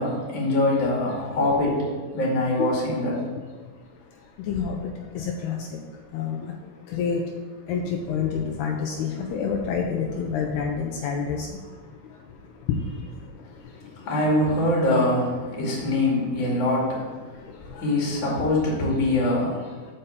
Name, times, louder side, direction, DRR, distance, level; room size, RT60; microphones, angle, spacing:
voice 1, 0.0-1.9 2.1-3.2 14.0-17.3 17.8-19.6, left 1 dB, 35° left, -4 dB, 2.4 m, -23 dB
voice 2, 4.5-4.9 5.2-5.7 6.1-6.5 6.9-7.2 7.7-11.5 17.7-17.8, left 6 dB, 80° left, 1 dB, 2.5 m, -27 dB
7.8 x 5.4 x 7.0 m, 1.4 s
omnidirectional pair, 5.0 m